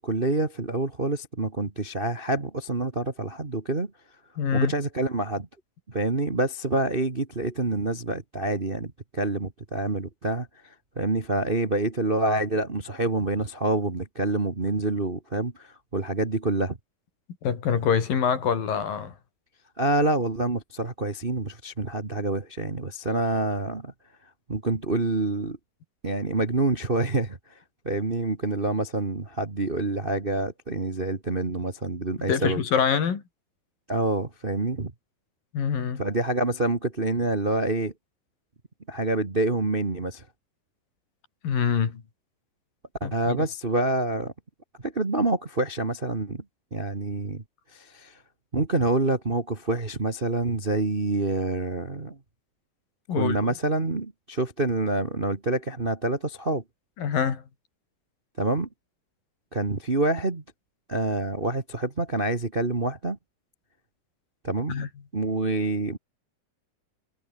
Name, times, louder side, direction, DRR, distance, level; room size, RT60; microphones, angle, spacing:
voice 1, 0.0-3.9 4.5-5.5 5.9-10.5 10.9-16.8 19.8-23.9 24.5-25.6 26.0-27.4 27.8-32.6 33.9-34.9 36.0-37.9 38.9-40.2 43.0-44.3 44.8-46.4 46.7-47.4 47.7-48.1 48.5-52.2 53.2-56.6 58.4-58.7 59.5-60.4 60.9-63.2 64.4-64.8 65.1-66.0, right 2 dB, 30° right, 1.1 m, -27 dB
voice 2, 4.4-4.7 17.4-19.2 32.3-33.2 35.5-36.0 41.4-42.0 43.0-43.5 53.1-53.5 57.0-57.4 64.7-64.9, left 7 dB, 85° left, 5.1 m, -25 dB
omnidirectional pair, 3.9 m